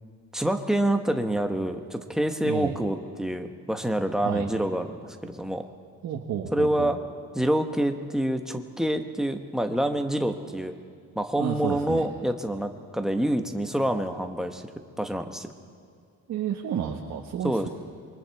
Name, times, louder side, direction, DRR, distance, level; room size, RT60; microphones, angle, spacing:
voice 1, 0.3-5.6 6.5-7.0 7.3-10.7 11.1-14.6 15.0-15.5 17.4-17.7, right 1 dB, ahead, 5 dB, 1.1 m, -27 dB
voice 2, 2.4-2.8 4.2-4.5 6.0-7.0 11.4-12.1 16.3-17.7, right 9 dB, 60° right, 0 dB, 1.5 m, -31 dB
27.5 x 23.0 x 4.7 m, 2.4 s
cardioid pair, 165°, 31 cm